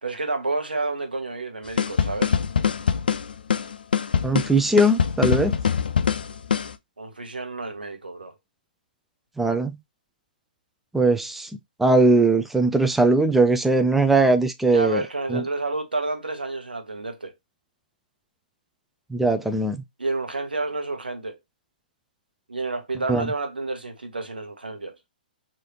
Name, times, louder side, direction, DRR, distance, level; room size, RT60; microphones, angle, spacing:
voice 1, 0.0-2.4 7.0-8.3 14.7-17.3 20.0-21.4 22.5-25.0, right 3 dB, 85° right, 0.9 m, -29 dB
sound 1, 1.8-6.7, left 7 dB, 75° left, 0.4 m, -23 dB
voice 2, 4.2-5.5 9.4-9.8 10.9-11.5 11.8-15.0 15.3-15.4 19.1-19.8 23.1-23.3, right 2 dB, 5° right, 0.4 m, -20 dB
3.2 x 2.7 x 2.8 m
figure-of-eight pair, 125°, 5 cm